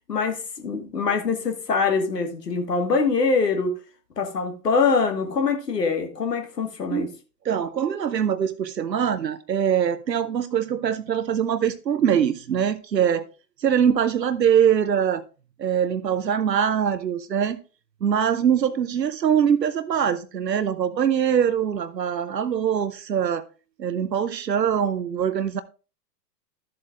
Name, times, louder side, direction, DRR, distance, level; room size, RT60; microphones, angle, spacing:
voice 1, 0.1-3.7 4.2-7.1, left 4 dB, 75° left, 1.6 m, -24 dB
voice 2, 7.4-13.2 13.6-15.2 15.6-17.6 18.0-23.4 23.8-25.6, right 8 dB, 85° right, 0.6 m, -23 dB
13.0 x 7.5 x 2.4 m
figure-of-eight pair, 110°, 49 cm